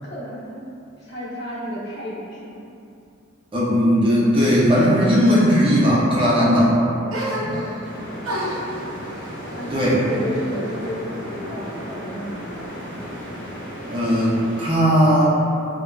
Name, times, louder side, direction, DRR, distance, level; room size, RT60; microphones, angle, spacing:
voice 1, 0.0-0.7 1.0-2.6 6.7-8.1 9.5-12.8, equal, 55° left, -8 dB, 0.7 m, -33 dB
voice 2, 3.5-6.7 7.4-7.5 9.7-10.0 13.9-15.4, equal, 25° right, -7 dB, 0.4 m, -17 dB
sound 1, 7.1-7.9 8.2-11.0 11.3-12.1, equal, 90° right, 0.6 m, -32 dB
sound 2, 7.8-14.7, equal, 90° left, 0.9 m, -35 dB
3.1 x 2.0 x 2.2 m, 2.6 s
head